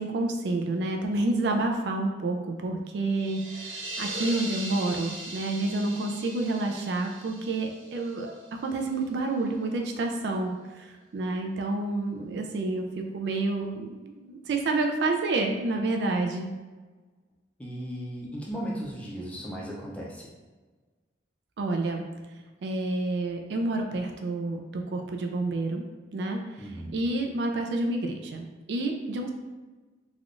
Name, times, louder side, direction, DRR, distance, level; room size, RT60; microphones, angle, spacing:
voice 1, 0.0-8.3 8.6-12.9 13.1-16.5 21.6-22.0 22.6-25.8 26.1-29.3, right 2 dB, 65° right, 3 dB, 0.3 m, -29 dB
sound 1, 3.1-8.7, right 2 dB, 85° right, 1.0 m, -39 dB
voice 2, 17.6-20.3 26.6-27.0, equal, 5° left, -5 dB, 0.5 m, -36 dB
3.3 x 2.3 x 2.5 m, 1.3 s
head